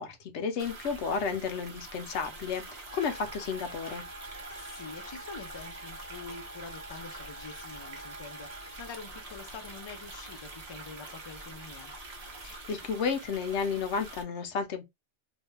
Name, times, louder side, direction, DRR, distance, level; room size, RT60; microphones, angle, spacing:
voice 1, 0.0-4.0 12.4-14.8, left 5 dB, 80° left, 1.0 m, -32 dB
sound 1, 0.6-14.2, right 2 dB, 35° right, 0.8 m, -45 dB
sound 2, 2.9-8.9, right 1 dB, 55° right, 1.1 m, -48 dB
voice 2, 4.5-11.9, left 5 dB, 40° left, 0.4 m, -46 dB
2.7 x 2.2 x 3.2 m
omnidirectional pair, 1.2 m